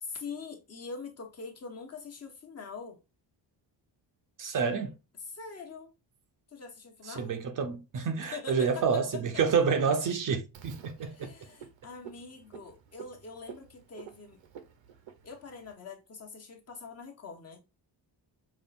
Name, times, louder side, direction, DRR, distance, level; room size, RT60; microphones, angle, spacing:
voice 1, 0.0-3.0 5.3-5.9 6.5-7.3 8.3-9.0 11.0-14.4 15.2-17.6, left 5 dB, 35° left, 0.9 m, -43 dB
voice 2, 4.4-5.0 7.1-11.3, right 6 dB, 45° right, 0.6 m, -29 dB
Frog, 10.5-15.7, right 8 dB, 80° right, 0.9 m, -50 dB
5.4 x 2.4 x 2.5 m
cardioid pair, 160°, 44 cm